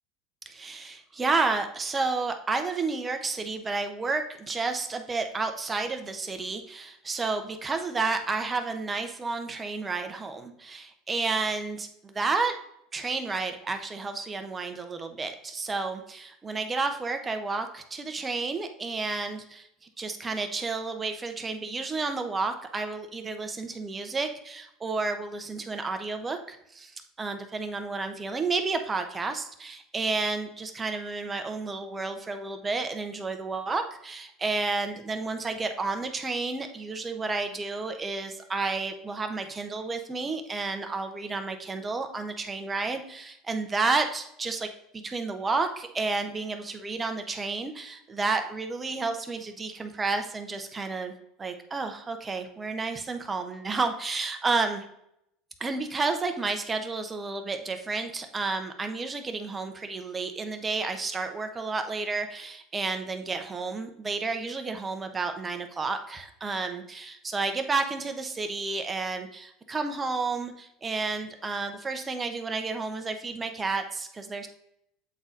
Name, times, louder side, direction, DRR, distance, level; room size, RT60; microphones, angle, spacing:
voice 1, 0.4-12.5 12.9-26.9 27.2-51.1 51.4-54.9 55.6-74.5, right 3 dB, 20° right, 6 dB, 0.9 m, -31 dB
7.9 x 3.9 x 3.8 m, 0.76 s
supercardioid pair, 100°, 0 cm